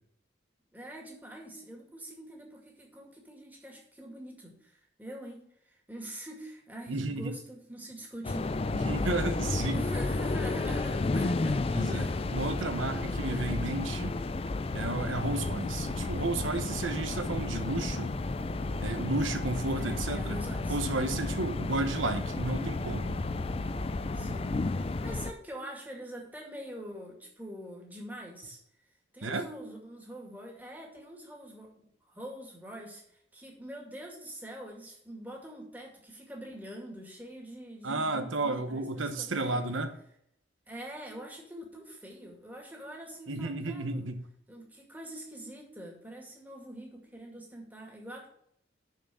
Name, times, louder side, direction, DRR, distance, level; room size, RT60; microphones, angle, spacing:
voice 1, 0.7-9.2 9.7-12.4 12.8-13.8 19.8-20.8 24.1-28.6 29.1-33.0 33.3-39.8 40.7-44.1 44.5-48.3, right 1 dB, 10° right, 2.2 m, -45 dB
voice 2, 6.9-7.4 8.7-9.8 11.7-14.2 14.7-18.1 18.8-20.4 20.7-23.2 29.2-29.5 37.8-39.9 43.3-44.2, right 2 dB, 85° right, 1.1 m, -32 dB
sound 1, 8.2-25.3, left 2 dB, 30° left, 0.4 m, -32 dB
sound 2, 14.7-24.4, equal, 35° right, 2.2 m, -43 dB
6.5 x 6.3 x 6.9 m
head